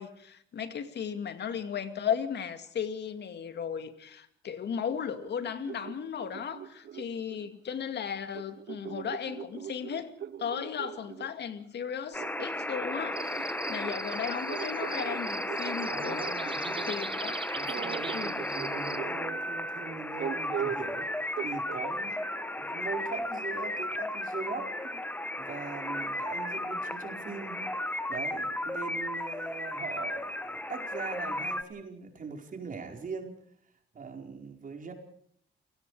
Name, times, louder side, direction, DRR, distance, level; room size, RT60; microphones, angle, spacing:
voice 1, 0.0-10.1 10.4-17.4 18.1-18.3, left 7 dB, 60° left, 9 dB, 2.3 m, -36 dB
sound 1, 5.1-7.5 8.3-11.3 12.2-16.9 17.7-19.4 20.2-20.9 21.4-21.8, right 9 dB, 60° right, 1.3 m, -40 dB
sound 2, 12.1-31.6, left 1 dB, 10° left, 1.4 m, -34 dB
sound 3, 13.1-19.0, right 4 dB, 25° right, 1.3 m, -41 dB
voice 2, 15.9-16.9 17.5-21.1 21.4-22.2 22.6-25.0 25.4-33.4 33.9-34.9, right 4 dB, 45° right, 3 dB, 4.8 m, -41 dB
29.5 x 18.0 x 5.0 m, 0.65 s
cardioid pair, 90°, 20 cm